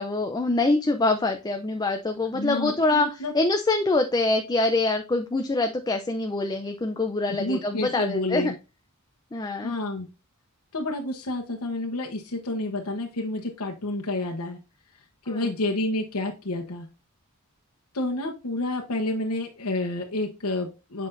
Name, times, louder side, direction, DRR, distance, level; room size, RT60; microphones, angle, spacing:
voice 1, 0.0-3.1 3.3-8.5 9.3-9.7 15.3-15.5, left 2 dB, 20° left, 5 dB, 0.5 m, -25 dB
voice 2, 2.3-3.3 7.4-8.5 9.6-10.1 10.7-14.6 15.3-16.9 17.9-21.1, left 2 dB, 75° left, 1 dB, 1.1 m, -29 dB
7.7 x 5.2 x 2.6 m, 0.29 s
head